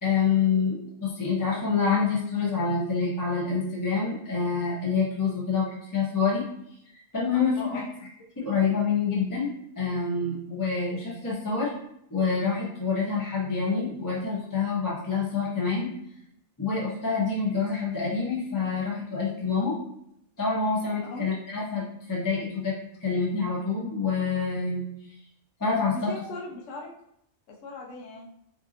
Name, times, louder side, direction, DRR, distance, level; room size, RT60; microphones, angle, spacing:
voice 1, 0.0-6.4 7.1-7.8 8.4-9.5 9.8-11.7 12.1-15.9 16.6-19.8 20.4-22.7 23.0-24.8 25.6-25.9, left 5 dB, 20° left, -5 dB, 0.7 m, -27 dB
voice 2, 7.6-7.9 21.0-21.3 26.1-26.9 27.5-28.3, left 3 dB, 65° left, -1 dB, 1.0 m, -39 dB
5.2 x 2.7 x 2.8 m, 0.75 s
omnidirectional pair, 1.5 m